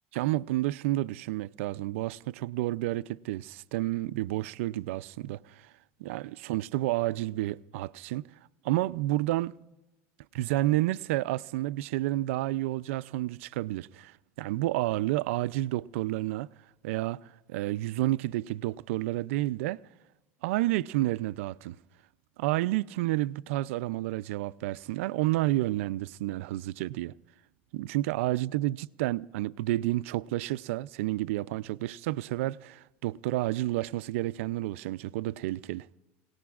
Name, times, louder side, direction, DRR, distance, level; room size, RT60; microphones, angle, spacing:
voice 1, 0.1-5.7 6.0-8.3 8.6-9.5 10.3-16.5 16.8-19.8 20.4-21.8 22.4-27.1 27.7-35.9, right 16 dB, 85° right, 0.4 m, -30 dB
29.5 x 18.0 x 2.4 m
supercardioid pair, 135°, 7 cm